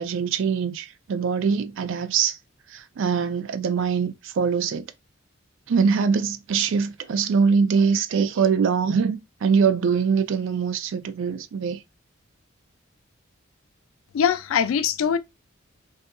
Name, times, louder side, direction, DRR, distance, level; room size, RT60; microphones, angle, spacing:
voice 1, 0.0-2.4 2.7-4.9 5.7-11.8, right 6 dB, 65° right, 0.3 m, -23 dB
voice 2, 14.1-15.2, left 7 dB, 75° left, 0.3 m, -22 dB
2.7 x 2.4 x 2.2 m
head